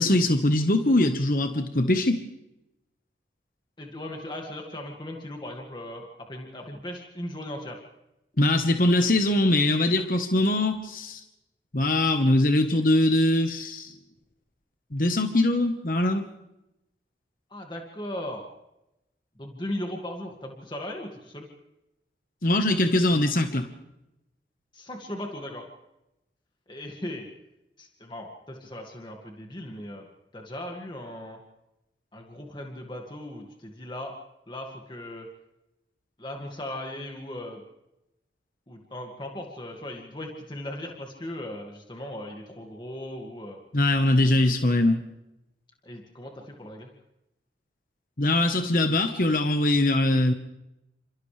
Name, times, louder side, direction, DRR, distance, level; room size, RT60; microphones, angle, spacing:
voice 1, 0.0-2.2 8.4-11.2 11.7-13.9 14.9-16.3 22.4-23.7 43.7-45.0 48.2-50.3, left 1 dB, 50° left, 6 dB, 1.3 m, -22 dB
voice 2, 3.8-7.8 17.5-18.4 19.4-21.5 24.7-25.7 26.7-27.3 27.8-30.1 30.3-31.4 32.1-34.1 34.5-35.3 36.2-37.6 38.7-43.6 45.8-46.9, left 1 dB, 25° left, 1 dB, 2.2 m, -38 dB
29.0 x 27.0 x 3.4 m, 0.90 s
head